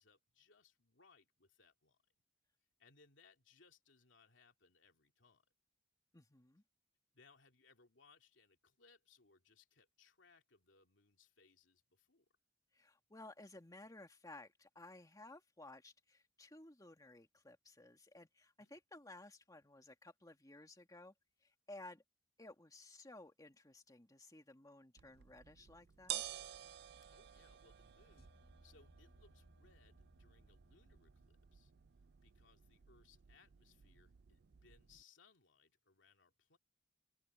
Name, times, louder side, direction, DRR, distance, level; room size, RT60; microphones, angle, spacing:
voice 1, 0.0-2.0 2.8-5.5 7.1-12.3 18.6-18.7 27.1-28.3 28.6-31.7 32.2-36.6, left 4 dB, 80° left, 2.7 m, -69 dB
voice 2, 6.1-6.6 12.7-21.1 21.4-22.0 22.4-26.2, left 2 dB, 20° left, 2.1 m, -57 dB
sound 1, 25.0-35.0, right 12 dB, 60° right, 0.4 m, -52 dB
sound 2, 28.2-32.5, equal, 60° left, 7.3 m, -69 dB
open air
head